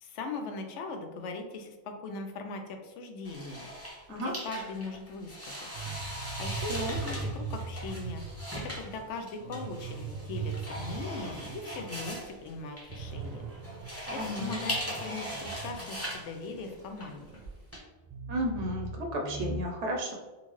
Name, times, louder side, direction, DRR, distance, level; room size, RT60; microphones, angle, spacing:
voice 1, 0.0-3.7 4.1-5.5 5.9-6.0 6.4-8.2 8.6-13.5 14.1-17.3, left 3 dB, 90° left, 5 dB, 0.9 m, -40 dB
sound 1, 3.2-17.8, equal, 15° left, 0.9 m, -40 dB
sound 2, 5.7-12.2 12.5-12.6 12.9-17.5 18.0-19.6, right 4 dB, 60° right, 0.4 m, -40 dB
voice 2, 14.1-14.6 18.3-20.1, equal, 80° right, 2 dB, 0.9 m, -33 dB
3.8 x 2.4 x 3.0 m, 1.2 s
omnidirectional pair, 1.2 m